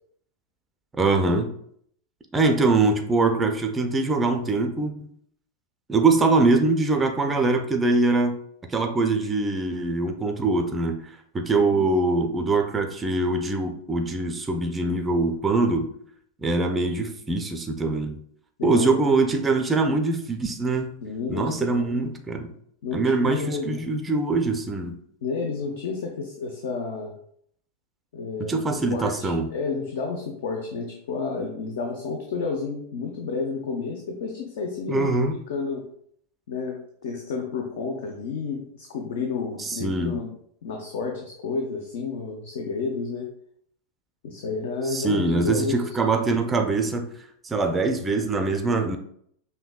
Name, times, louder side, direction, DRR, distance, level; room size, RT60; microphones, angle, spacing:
voice 1, 1.0-1.5 2.3-5.1 5.9-8.4 8.7-15.9 16.4-18.2 18.6-21.0 21.3-22.5 22.9-25.0 28.5-29.5 34.9-35.4 39.6-40.2 44.8-47.1 47.4-49.0, right 3 dB, 15° right, 5 dB, 0.4 m, -23 dB
voice 2, 21.0-22.0 22.8-23.8 25.2-27.1 28.1-28.6 28.9-35.1 35.5-35.8 36.5-40.3 40.6-43.3 44.2-45.8, left 4 dB, 55° left, 2 dB, 0.5 m, -31 dB
5.2 x 2.6 x 2.3 m, 0.67 s
figure-of-eight pair, 90°, 0 cm